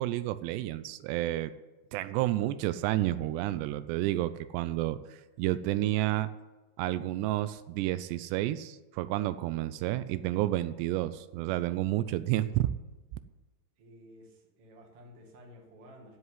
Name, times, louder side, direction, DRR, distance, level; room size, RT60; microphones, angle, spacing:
voice 1, 0.0-1.5 1.9-5.0 5.4-6.3 6.8-12.7, right 15 dB, 85° right, 13 dB, 2.7 m, -30 dB
voice 2, 13.8-16.2, equal, 45° right, 1 dB, 2.5 m, -53 dB
10.0 x 8.0 x 9.8 m, 1.1 s
omnidirectional pair, 4.8 m